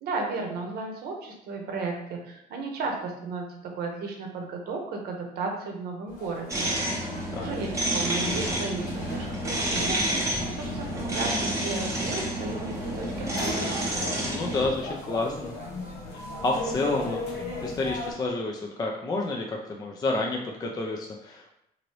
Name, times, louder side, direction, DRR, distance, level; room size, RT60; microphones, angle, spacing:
voice 1, 0.0-6.7 7.0-13.7, right 3 dB, 70° right, 2 dB, 0.7 m, -34 dB
sound 1, 6.1-18.1, left 2 dB, 60° left, 1.2 m, -40 dB
sound 2, 6.5-14.7, right 1 dB, 15° right, 0.8 m, -29 dB
sound 3, 8.1-18.3, left 3 dB, 90° left, 0.7 m, -42 dB
voice 2, 14.2-15.5 16.1-21.5, left 2 dB, 25° left, 0 dB, 0.4 m, -30 dB
2.8 x 2.6 x 3.0 m, 0.79 s
cardioid pair, 110°, 17 cm